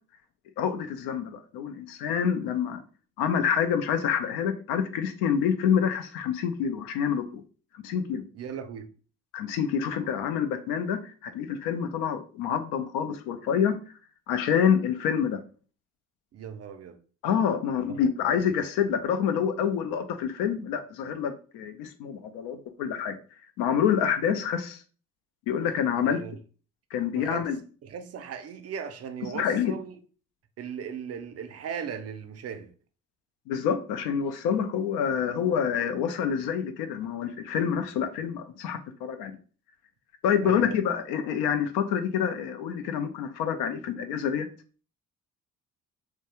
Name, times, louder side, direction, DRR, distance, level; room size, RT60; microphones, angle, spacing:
voice 1, 0.6-2.8 3.2-7.4 7.8-8.2 9.3-13.8 14.3-15.4 17.2-23.2 23.6-24.8 25.5-26.2 26.9-27.6 29.3-29.7 33.5-39.3 40.2-44.5, left 8 dB, 75° left, 0.5 m, -27 dB
voice 2, 8.3-8.9 16.3-17.0 17.9-18.1 26.0-26.4 27.1-30.0 30.6-32.7 40.4-40.8, right 7 dB, 40° right, 0.4 m, -38 dB
2.3 x 2.1 x 2.9 m
hypercardioid pair, 50°, 39 cm